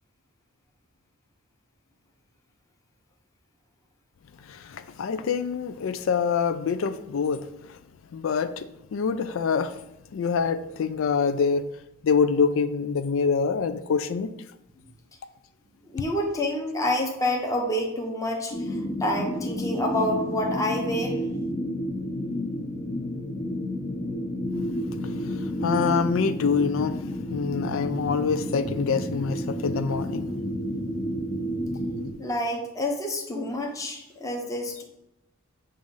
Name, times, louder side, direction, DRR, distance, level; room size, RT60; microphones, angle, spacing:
voice 1, 4.5-7.4 8.1-9.7 10.1-11.6 12.0-14.3 25.3-27.0 27.3-30.3, left 5 dB, 65° left, 0.4 m, -25 dB
voice 2, 15.9-21.2 32.2-34.8, left 1 dB, 15° left, 0.9 m, -28 dB
sound 1, 18.5-32.1, equal, 40° left, 0.8 m, -30 dB
7.5 x 2.5 x 5.5 m
head